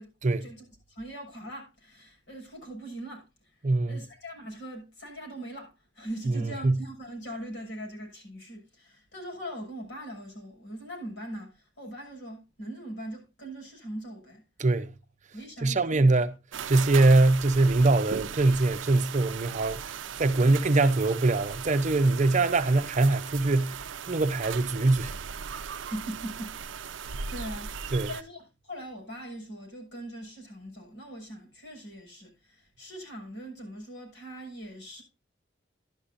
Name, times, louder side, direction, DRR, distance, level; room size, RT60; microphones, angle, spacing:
voice 1, 0.4-14.4 15.3-16.1 25.7-26.7 26.9-35.0, right 1 dB, 70° left, 6.9 m, -41 dB
voice 2, 3.6-4.0 6.3-6.8 14.6-14.9 15.6-16.3 16.7-25.2 27.9-28.1, right 2 dB, 40° right, 0.7 m, -23 dB
sound 1, 16.5-28.2, right 7 dB, 85° right, 0.6 m, -38 dB
12.0 x 11.5 x 2.6 m
head